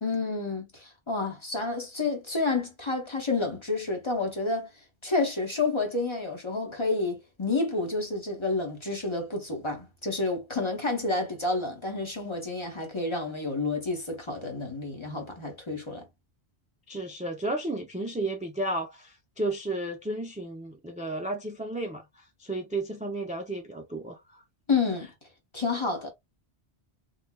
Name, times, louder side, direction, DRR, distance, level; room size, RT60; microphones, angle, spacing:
voice 1, 0.0-4.7 5.0-16.0 24.7-25.1 25.5-26.1, left 3 dB, 30° left, 0.9 m, -29 dB
voice 2, 16.9-24.4, right 2 dB, 15° right, 0.3 m, -33 dB
3.2 x 3.2 x 2.3 m
omnidirectional pair, 1.1 m